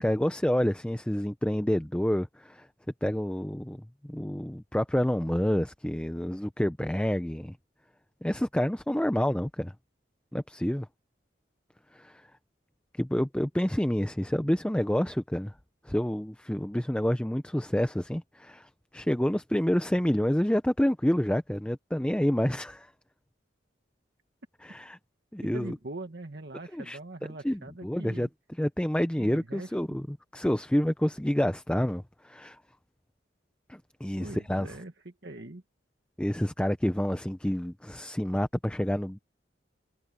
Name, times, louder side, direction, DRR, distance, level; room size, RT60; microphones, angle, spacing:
voice 1, 0.0-2.7 3.0-3.8 4.0-7.6 8.2-9.7 10.3-10.9 11.9-12.1 13.0-15.5 15.9-22.9 24.6-25.0 25.3-25.7 26.7-27.0 27.4-28.3 28.6-32.6 33.7-34.7 36.2-39.2, equal, 5° left, 0.6 m, -28 dB
voice 2, 25.5-28.3 29.2-29.8 34.2-35.6, right 2 dB, 60° right, 1.6 m, -42 dB
head